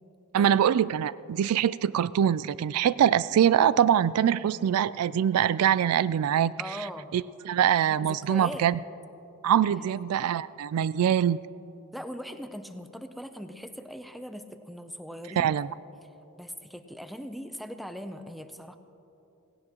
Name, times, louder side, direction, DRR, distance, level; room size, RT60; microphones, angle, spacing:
voice 1, 0.3-6.5 7.1-8.8 9.4-11.4 15.4-15.7, right 9 dB, 85° right, 18 dB, 0.3 m, -23 dB
voice 2, 6.6-7.1 7.8-8.7 9.7-10.0 11.9-15.5 16.0-16.1 16.4-18.8, equal, ahead, 8 dB, 0.5 m, -40 dB
17.5 x 17.0 x 3.0 m, 2.9 s
head